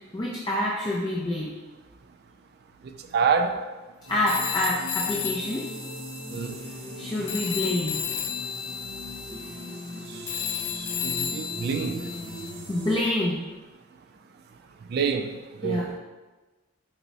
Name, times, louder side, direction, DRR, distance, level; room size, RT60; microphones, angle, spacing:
voice 1, 0.1-1.5 4.1-5.7 7.0-8.0 12.7-13.5 15.6-15.9, left 1 dB, 20° left, -4 dB, 0.4 m, -27 dB
voice 2, 3.1-3.6 6.3-6.5 11.0-12.0 14.9-15.3 15.6-15.8, right 6 dB, 55° right, 6 dB, 0.3 m, -25 dB
sound 1, 4.1-13.0, equal, 30° right, 0.7 m, -39 dB
Telephone, 4.3-7.0 7.3-12.5, left 9 dB, 90° left, 0.3 m, -33 dB
4.5 x 2.0 x 4.0 m, 1.2 s
head